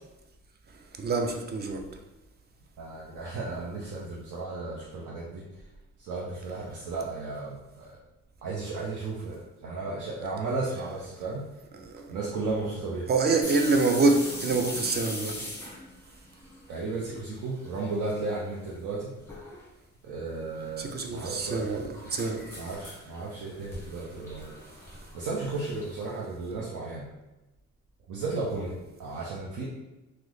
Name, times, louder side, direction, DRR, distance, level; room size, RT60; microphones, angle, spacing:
voice 1, 1.0-1.9 11.8-12.1 13.1-15.5 20.8-22.6, right 3 dB, 35° right, 4 dB, 0.5 m, -26 dB
voice 2, 2.8-5.6 6.0-8.0 8.4-11.4 12.1-13.1 16.7-19.1 20.0-22.1 22.6-24.6 25.1-27.1 28.1-29.6, right 3 dB, 75° right, -4 dB, 0.7 m, -34 dB
sound 1, 13.4-17.2 17.5-18.2 18.5-18.6 19.3-19.6 20.6-26.1, left 1 dB, 5° left, 0.9 m, -41 dB
3.0 x 2.1 x 3.8 m, 1.0 s
cardioid pair, 90°, 30 cm